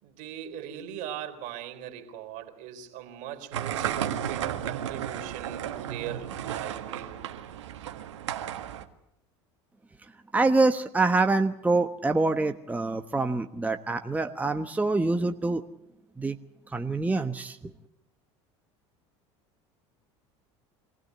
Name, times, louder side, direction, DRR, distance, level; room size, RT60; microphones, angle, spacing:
voice 1, 0.0-7.2, right 10 dB, 65° right, 6 dB, 3.6 m, -40 dB
sound 1, 3.5-8.8, right 10 dB, 90° right, 1.6 m, -33 dB
voice 2, 10.3-15.6 16.2-16.4 16.7-17.7, right 3 dB, 10° right, 6 dB, 1.1 m, -25 dB
25.0 x 16.0 x 9.4 m, 0.81 s
hypercardioid pair, 85°, 15 cm